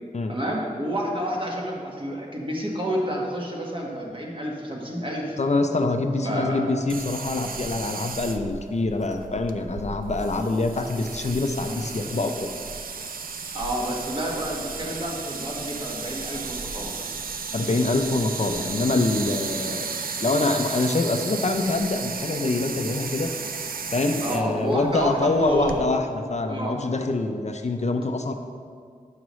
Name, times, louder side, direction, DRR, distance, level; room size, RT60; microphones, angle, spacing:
voice 1, 0.3-5.4 6.2-6.7 11.7-11.9 13.5-16.9 24.2-25.8 26.5-26.8, equal, 35° right, -2 dB, 1.4 m, -29 dB
voice 2, 5.4-12.5 17.5-23.3 23.9-26.0 26.3-28.3, left 2 dB, 50° left, 5 dB, 0.5 m, -25 dB
sound 1, 6.9-25.8, right 5 dB, 90° right, 0.4 m, -34 dB
9.5 x 6.1 x 3.1 m, 2.1 s
wide cardioid pair, 70°, 15 cm